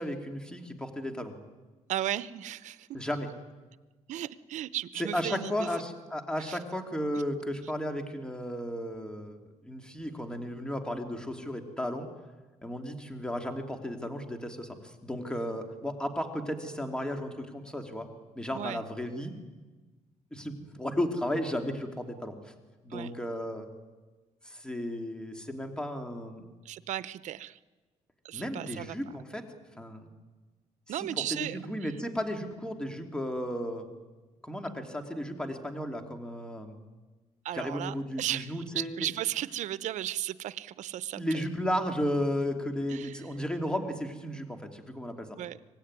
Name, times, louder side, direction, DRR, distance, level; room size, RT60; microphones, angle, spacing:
voice 1, 0.0-1.3 2.9-3.3 5.0-9.4 9.6-12.1 12.6-18.1 18.3-19.3 20.3-22.5 22.8-23.7 24.4-26.4 28.3-29.4 29.8-30.1 30.9-33.9 34.4-36.8 37.5-39.1 41.1-45.4, equal, 5° left, 4 dB, 2.8 m, -34 dB
voice 2, 1.9-2.9 4.1-5.7 6.5-6.6 18.5-18.8 22.9-23.1 26.6-27.6 28.2-29.0 30.9-31.6 37.4-41.4 42.9-43.2 45.4-45.6, right 12 dB, 70° right, 16 dB, 0.8 m, -35 dB
25.0 x 18.0 x 9.8 m, 1.3 s
cardioid pair, 125°, 13 cm